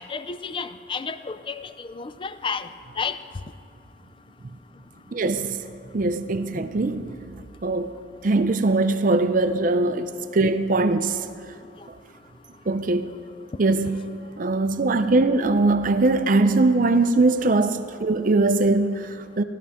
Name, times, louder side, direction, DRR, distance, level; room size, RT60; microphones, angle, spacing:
voice 1, 0.0-2.7 3.0-3.2, left 5 dB, 25° left, 0.3 m, -31 dB
voice 2, 5.1-5.6 5.9-7.2 7.6-7.9 8.2-11.2 12.7-13.2 13.6-14.0 14.4-19.4, right 2 dB, 40° right, 0.5 m, -21 dB
16.0 x 12.5 x 3.6 m
head